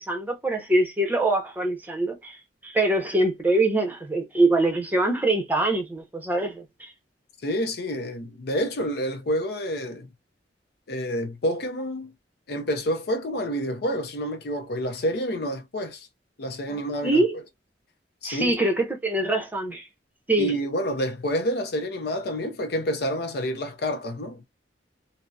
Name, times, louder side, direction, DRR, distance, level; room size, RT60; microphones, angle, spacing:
voice 1, 0.0-2.4 2.6-6.9 16.7-17.4 18.2-19.9 20.3-20.5, right 2 dB, 10° right, 0.7 m, -24 dB
voice 2, 7.4-10.1 10.9-12.1 12.5-16.1 16.4-17.2 18.2-18.6 20.4-24.4, equal, 60° left, 0.5 m, -28 dB
2.7 x 2.0 x 2.3 m
head